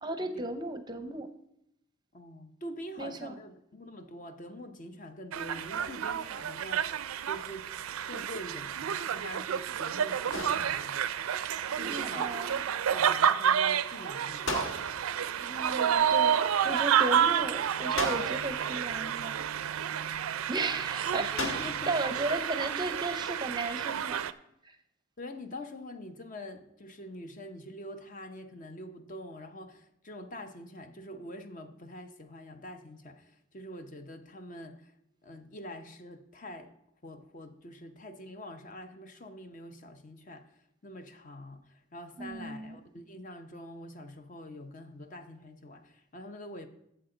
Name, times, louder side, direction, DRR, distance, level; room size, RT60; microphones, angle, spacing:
voice 1, 0.0-1.3 3.0-3.4 11.8-12.6 15.4-19.5 20.5-24.3 24.6-24.8 42.2-42.8, right 2 dB, 20° right, 8 dB, 0.6 m, -35 dB
voice 2, 2.1-7.7 8.1-11.1 11.8-12.4 12.7-14.7 21.2-21.9 25.2-34.9 35.2-36.7 37.0-40.5 40.8-46.7, left 1 dB, 40° left, 7 dB, 0.7 m, -45 dB
sound 1, 5.3-24.3, right 8 dB, 85° right, 0.4 m, -30 dB
sound 2, 10.3-11.2 14.5-15.3 18.0-18.7 21.4-22.0, left 2 dB, 65° left, 1.4 m, -36 dB
12.5 x 7.7 x 3.8 m, 0.77 s
head